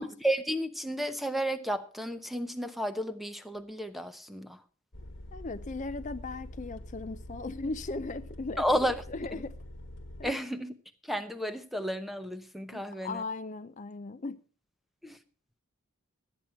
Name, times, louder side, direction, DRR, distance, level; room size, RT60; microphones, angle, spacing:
voice 1, 0.0-4.5 8.6-9.0 10.2-10.7 11.1-13.2 15.0-15.1, equal, ahead, 0.8 m, -32 dB
sound 1, 4.9-10.3, left 1 dB, 55° left, 1.3 m, -45 dB
voice 2, 5.3-8.8 9.1-9.5 10.2-10.4 12.7-14.4, left 3 dB, 35° left, 0.5 m, -37 dB
12.5 x 8.8 x 5.7 m
head